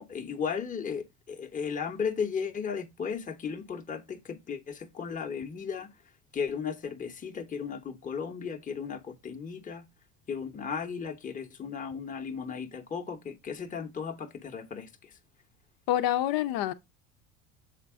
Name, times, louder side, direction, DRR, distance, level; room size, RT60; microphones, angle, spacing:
voice 1, 0.0-5.9 6.3-9.8 10.3-15.1, left 6 dB, 20° left, 1.0 m, -35 dB
voice 2, 15.9-16.7, left 13 dB, 60° left, 0.8 m, -26 dB
6.6 x 4.1 x 3.5 m
hypercardioid pair, 85°, 40 cm